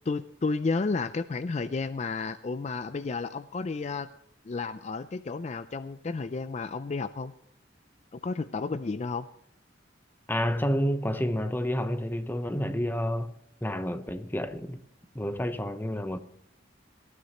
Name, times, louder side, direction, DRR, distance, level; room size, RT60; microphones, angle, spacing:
voice 1, 0.1-4.1 4.4-7.3 8.1-9.3, left 4 dB, 40° left, 0.4 m, -32 dB
voice 2, 10.3-13.3 13.6-14.8 15.1-16.2, equal, 10° left, 0.8 m, -29 dB
19.0 x 13.0 x 3.0 m
head